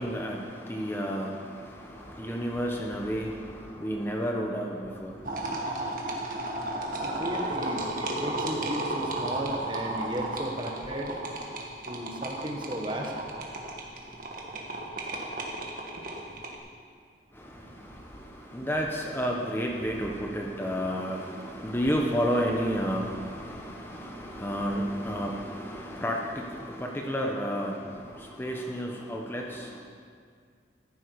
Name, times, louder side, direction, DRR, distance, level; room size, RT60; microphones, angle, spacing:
voice 1, 0.0-5.4 17.3-29.8, equal, 15° left, 0 dB, 0.9 m, -31 dB
sound 1, 5.3-16.6, right 2 dB, 50° right, 1.6 m, -34 dB
voice 2, 7.0-11.1 11.8-13.1, right 1 dB, 30° right, 1 dB, 1.4 m, -35 dB
14.0 x 11.0 x 4.7 m, 2.1 s
head